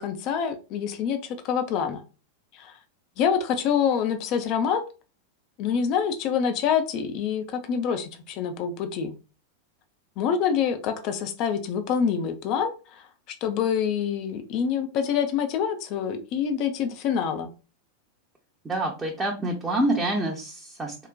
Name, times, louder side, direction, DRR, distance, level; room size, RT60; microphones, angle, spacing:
voice 1, 0.0-2.0 2.5-2.7 3.2-4.9 5.6-9.1 10.2-13.0 13.4-17.5, left 7 dB, 40° left, 7 dB, 0.4 m, -26 dB
voice 2, 18.6-21.1, right 1 dB, 10° right, -2 dB, 0.6 m, -27 dB
3.8 x 2.1 x 2.3 m, 0.32 s
figure-of-eight pair, 90°, 0 cm